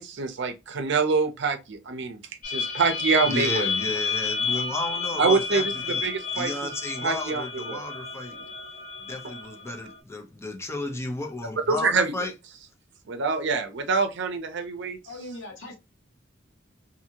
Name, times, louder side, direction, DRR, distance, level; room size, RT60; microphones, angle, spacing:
voice 1, 0.0-3.7 5.2-6.5 7.0-7.8 11.7-12.3 13.1-15.0, right 4 dB, 65° right, 0.6 m, -26 dB
sound 1, 2.4-10.0, left 5 dB, 50° left, 1.5 m, -31 dB
voice 2, 3.3-6.1 6.3-8.4 9.0-12.3, left 2 dB, 15° left, 0.6 m, -33 dB
voice 3, 15.0-15.8, left 1 dB, 85° left, 1.1 m, -39 dB
2.7 x 2.6 x 2.7 m
head